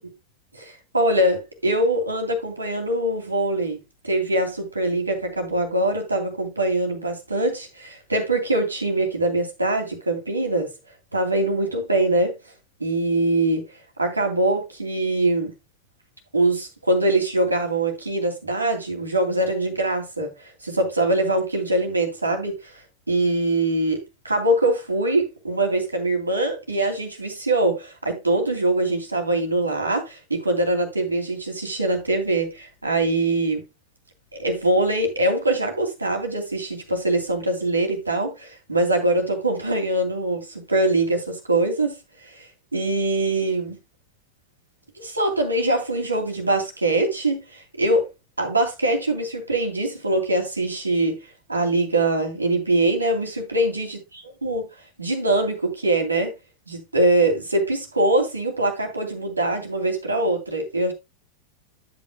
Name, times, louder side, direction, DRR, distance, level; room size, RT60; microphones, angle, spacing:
voice 1, 0.5-3.8 4.0-10.7 11.1-12.3 12.8-13.6 14.0-15.5 16.3-22.7 23.1-33.6 34.3-42.0 42.2-43.8 45.0-48.1 48.4-51.2 51.5-54.0 54.4-54.7 55.0-56.3 56.7-60.9, right 2 dB, 80° right, 2.7 m, -23 dB
11.5 x 8.4 x 2.3 m
figure-of-eight pair, 90°, 0 cm